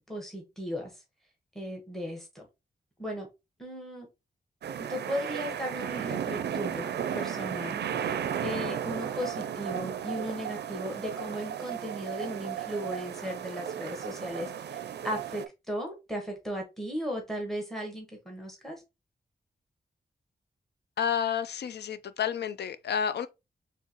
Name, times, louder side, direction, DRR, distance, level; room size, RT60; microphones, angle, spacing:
voice 1, 0.1-1.0 1.5-2.4 3.0-3.3 3.6-4.1 4.8-18.8, equal, ahead, 1.5 m, -36 dB
sound 1, 4.6-15.5, right 9 dB, 90° right, 0.4 m, -34 dB
voice 2, 21.0-23.3, left 8 dB, 85° left, 0.4 m, -30 dB
4.6 x 3.4 x 2.9 m
wide cardioid pair, 140°, 17 cm